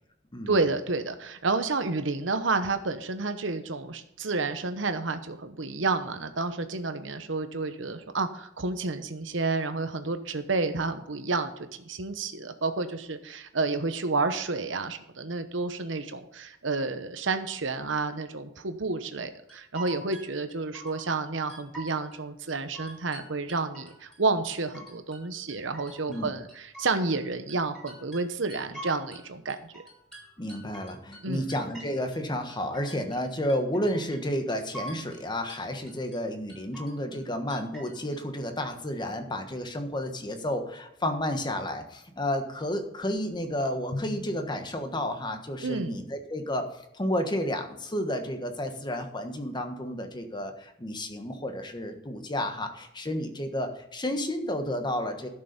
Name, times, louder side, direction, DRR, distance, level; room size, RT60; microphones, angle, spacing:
voice 1, 0.5-29.8 31.2-31.5 45.6-46.0, right 3 dB, 80° right, 9 dB, 1.0 m, -30 dB
sound 1, 19.5-21.2 21.5-22.2 22.5-24.2 24.5-25.2 25.5-29.2 29.5-32.2 32.5-33.2 33.5-34.2 34.5-35.2 35.5-36.2 36.5-37.2 37.5-38.2, right 1 dB, 5° left, 4.4 m, -45 dB
voice 2, 30.4-46.7 46.9-55.3, left 1 dB, 25° left, 6 dB, 1.3 m, -31 dB
Drum, 43.9-45.7, left 2 dB, 55° left, 0.8 m, -41 dB
12.0 x 6.8 x 5.3 m, 0.80 s
head